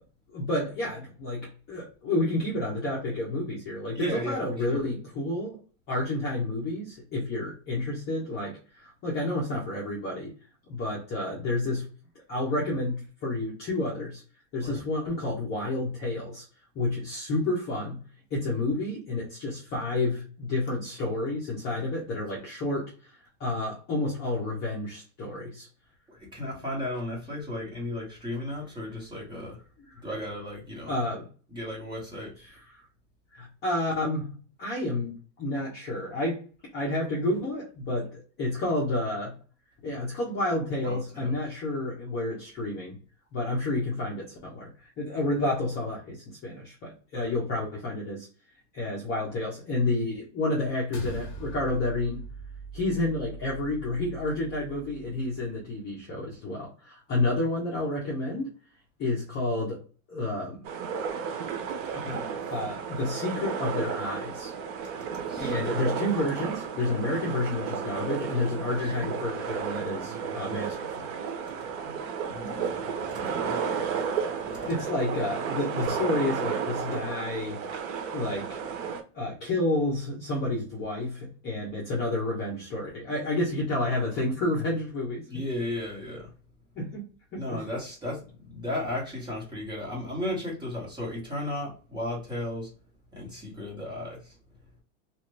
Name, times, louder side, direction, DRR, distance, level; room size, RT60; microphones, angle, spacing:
voice 1, 0.3-5.6 5.9-10.3 10.7-11.8 12.3-14.2 14.5-16.4 16.7-18.0 18.3-23.1 23.4-25.7 30.9-31.3 32.7-32.8 33.3-36.4 36.7-39.3 39.8-43.0 43.3-48.3 48.7-52.2 52.7-58.5 59.0-59.8 60.1-60.6 61.9-64.5 65.4-71.1 71.8-71.9 72.5-72.6 74.7-77.6 78.1-78.6 79.1-85.3 86.7-87.1 87.3-87.6, left 2 dB, 25° left, -5 dB, 0.9 m, -30 dB
voice 2, 3.9-4.9 14.6-14.7 26.1-29.6 30.0-30.9 31.5-32.3 40.8-41.4 47.1-47.3 65.2-65.7 68.8-69.1 72.3-73.6 74.4-75.1 85.3-86.3 87.3-92.7 93.1-94.4, left 1 dB, 10° right, -4 dB, 1.2 m, -35 dB
sound 1, 50.9-55.5, right 3 dB, 45° left, 1.1 m, -42 dB
sound 2, 60.6-79.0, right 6 dB, 50° right, 0.8 m, -33 dB
2.8 x 2.5 x 3.2 m, 0.37 s
supercardioid pair, 150°, 40 cm